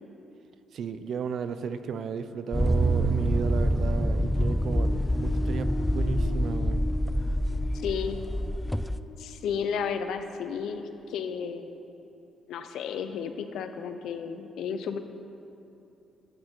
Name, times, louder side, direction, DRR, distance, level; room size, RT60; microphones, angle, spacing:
voice 1, 0.7-6.8, right 6 dB, 65° right, 11 dB, 0.5 m, -34 dB
sound 1, 2.5-9.0, left 1 dB, 5° left, 0.3 m, -27 dB
sound 2, 2.6-5.0, right 5 dB, 35° right, 1.2 m, -29 dB
sound 3, 3.9-11.4, left 2 dB, 50° left, 0.8 m, -41 dB
voice 2, 7.8-8.2 9.2-11.7 12.5-15.0, left 7 dB, 80° left, 8 dB, 0.7 m, -33 dB
13.0 x 9.0 x 4.5 m, 2.8 s
cardioid pair, 90°, 0 cm